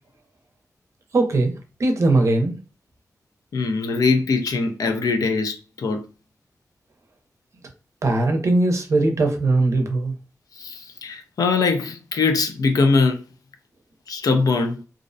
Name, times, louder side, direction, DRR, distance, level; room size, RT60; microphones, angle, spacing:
voice 1, 1.1-2.6 8.0-10.1, right 2 dB, 55° right, 0.5 m, -20 dB
voice 2, 3.5-6.0 10.6-13.2 14.1-14.8, left 4 dB, 85° left, 0.5 m, -22 dB
2.5 x 2.1 x 2.5 m
wide cardioid pair, 165°, 6 cm